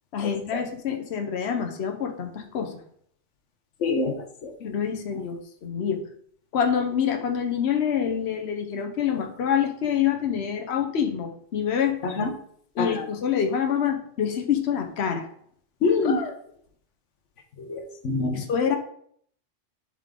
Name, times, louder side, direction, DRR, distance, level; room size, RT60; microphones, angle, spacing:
voice 1, 0.1-2.7 4.6-6.0 6.5-12.0 12.8-15.2 16.0-16.3 18.3-18.8, left 8 dB, 65° left, 4 dB, 1.2 m, -26 dB
voice 2, 3.8-4.1 4.4-4.5 12.0-12.3 12.8-13.0 15.8-16.2 17.6-18.4, left 4 dB, 85° left, 5 dB, 1.3 m, -25 dB
10.5 x 3.8 x 3.7 m, 0.62 s
omnidirectional pair, 1.2 m